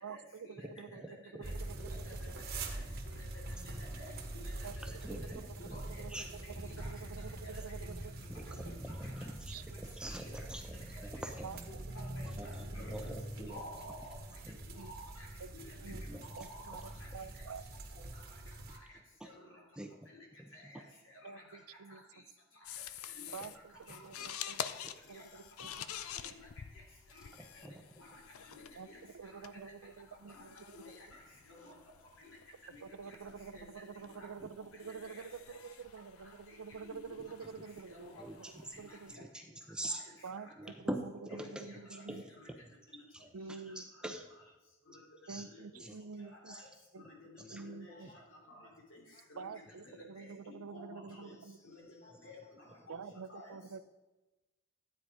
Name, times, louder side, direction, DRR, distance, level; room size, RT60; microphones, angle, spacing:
voice 1, 0.0-2.4 4.6-8.2 8.5-8.8 9.5-9.9 11.4-12.4 12.9-13.0 14.7-14.9 15.4-15.5 15.8-16.0 16.3-17.6 21.2-22.0 23.3-24.6 25.1-26.0 28.7-31.0 32.8-39.3 40.2-42.2 43.3-43.9 45.3-46.6 46.9-47.0 47.5-48.1 49.4-51.6 52.9-53.8, right 5 dB, 85° right, 14 dB, 0.5 m, -48 dB
voice 2, 1.0-1.4 4.8-5.8 6.1-6.3 8.3-11.5 12.2-12.5 12.9-13.6 14.4-14.6 15.9-16.2 19.2-19.3 19.8-20.1 20.4-20.7 24.8-24.9 27.4-27.8 38.2-38.8 39.1-40.0 40.6-42.2 43.8-44.2 45.3-45.4 45.8-45.9 46.5-46.6 47.4-47.6, right 1 dB, 5° right, 4 dB, 0.7 m, -44 dB
sound 1, 1.4-18.8, right 1 dB, 45° right, 1.4 m, -44 dB
voice 3, 5.6-6.0 6.8-6.9 11.2-11.3 11.7-11.8 12.2-12.9 13.4-14.2 14.9-15.1 15.5-15.6 16.3-16.8 25.1-25.2 28.8-29.0 30.7-30.8 31.5-31.6 33.5-33.7 34.2-34.3 34.8-35.2 36.9-37.0 38.0-38.1 47.8-47.9 50.5-51.3 51.7-51.8 53.3-53.5, equal, 65° left, -2 dB, 3.2 m, -50 dB
sound 2, 22.6-39.2, left 9 dB, 80° left, 0.5 m, -49 dB
voice 4, 35.5-36.0 47.9-48.7 49.1-49.2 50.7-50.8 51.3-52.5 53.5-53.6, left 2 dB, 35° left, 3 dB, 1.0 m, -65 dB
12.5 x 9.0 x 4.8 m, 1.1 s
head